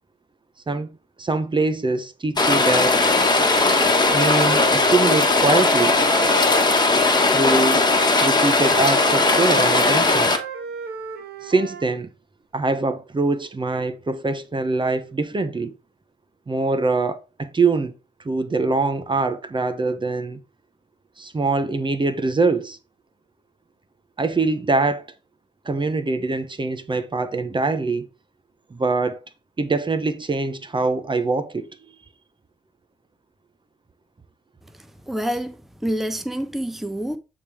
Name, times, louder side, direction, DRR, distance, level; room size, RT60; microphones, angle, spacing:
voice 1, 1.2-3.0 4.1-6.0 7.3-7.9 8.2-10.3 11.4-12.1 12.5-15.7 16.5-17.9 18.2-20.4 21.2-22.8 24.2-25.1 25.6-28.1 28.7-29.2 29.6-31.7, right 3 dB, 30° right, 1.0 m, -23 dB
Rain, 2.4-10.4, left 3 dB, 25° left, 1.6 m, -18 dB
Wind instrument woodwind instrument, 2.8-6.9 7.9-11.8, right 3 dB, 85° right, 1.7 m, -33 dB
voice 2, 35.1-35.6 35.8-37.2, equal, ahead, 0.9 m, -27 dB
8.5 x 3.8 x 4.8 m
cardioid pair, 65°, 16 cm